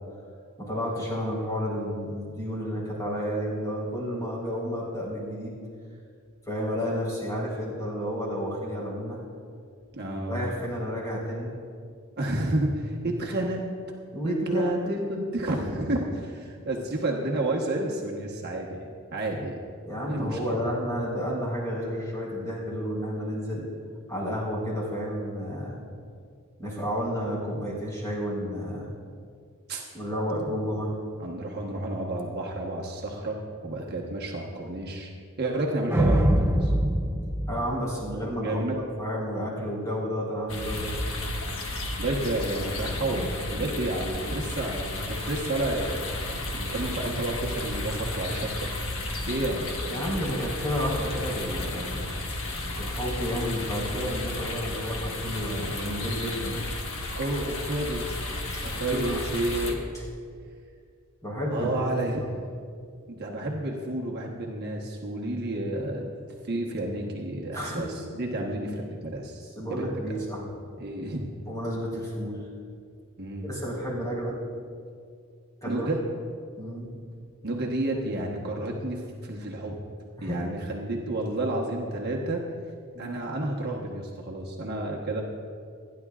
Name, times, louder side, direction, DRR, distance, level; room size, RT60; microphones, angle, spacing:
voice 1, 0.6-5.5 6.5-9.2 10.3-11.5 13.0-13.1 14.1-14.9 19.8-23.7 24.1-25.8 26.6-28.9 29.9-30.9 37.5-40.9 43.1-43.2 43.6-43.7 49.9-52.1 52.8-56.6 58.5-59.2 61.2-61.7 67.5-68.0 69.5-70.4 71.5-72.4 73.4-74.4 75.6-75.9 76.6-76.9 80.2-80.6 82.9-83.1, equal, 15° left, -5 dB, 4.1 m, -31 dB
voice 2, 9.9-10.5 12.2-13.6 14.2-18.8 19.1-19.6 20.1-20.7 29.7-29.8 31.2-33.4 33.6-35.1 35.4-36.7 38.4-38.8 42.0-43.2 43.5-46.0 46.5-48.7 49.2-49.7 57.2-58.2 58.6-59.8 61.5-62.3 63.1-66.1 66.4-69.9 70.8-71.2 73.2-73.5 75.7-76.0 77.4-79.8 80.2-82.4 83.0-85.2, right 1 dB, 50° right, -1 dB, 1.3 m, -30 dB
sound 1, 35.9-38.4, right 1 dB, 10° right, 0.7 m, -24 dB
sound 2, 40.5-59.7, left 2 dB, 70° left, 1.4 m, -33 dB
28.0 x 10.5 x 2.5 m, 2.2 s
head